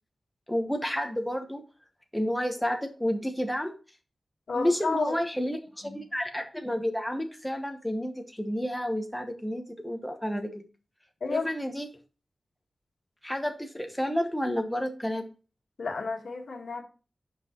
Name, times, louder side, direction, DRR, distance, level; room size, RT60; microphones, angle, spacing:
voice 1, 0.5-1.6 2.1-3.7 4.5-10.6 11.3-11.9 13.2-15.3, equal, 5° left, 4 dB, 1.0 m, -30 dB
voice 2, 4.5-5.5 5.8-6.0 11.2-11.5 15.8-16.8, left 4 dB, 80° left, 3 dB, 1.5 m, -32 dB
8.9 x 5.5 x 3.0 m, 0.33 s
wide cardioid pair, 125°, 0 cm